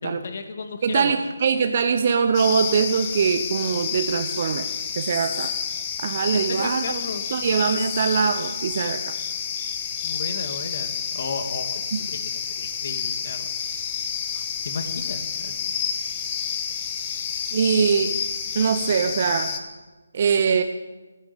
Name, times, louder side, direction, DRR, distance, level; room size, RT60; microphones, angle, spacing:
voice 1, 0.0-1.1 6.4-7.3 7.7-7.9 10.0-12.2 12.6-13.5 14.6-15.7, left 4 dB, 45° left, 6 dB, 2.1 m, -34 dB
voice 2, 0.8-4.7 4.9-5.5 6.0-7.0 7.3-9.1 11.9-12.0 17.5-18.2 18.5-19.6 20.1-20.6, right 6 dB, 40° right, 8 dB, 0.8 m, -22 dB
sound 1, 2.3-19.6, left 7 dB, 25° left, 1.4 m, -29 dB
15.5 x 9.7 x 8.5 m, 1.2 s
figure-of-eight pair, 160°, 0 cm